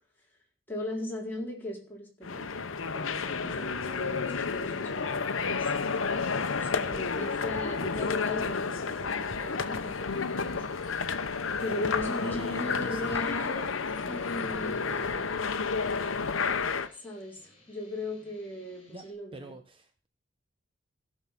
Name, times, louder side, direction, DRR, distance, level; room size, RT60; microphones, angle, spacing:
voice 1, 0.7-2.5 2.9-10.6 11.6-13.7 14.1-15.4 17.0-19.5, left 1 dB, 10° left, -3 dB, 4.2 m, -38 dB
sound 1, 2.2-16.9, left 5 dB, 80° left, 0.9 m, -31 dB
sound 2, 2.7-6.1 6.5-6.9, right 1 dB, 75° right, 2.8 m, -54 dB
sound 3, 4.0-19.1, left 2 dB, 30° left, 6.8 m, -60 dB
voice 2, 6.3-6.8 11.5-11.7 12.2-13.2 18.9-19.0 19.3-20.1, right 1 dB, 25° right, 7 dB, 0.8 m, -46 dB
15.5 x 6.5 x 5.8 m, 0.41 s
head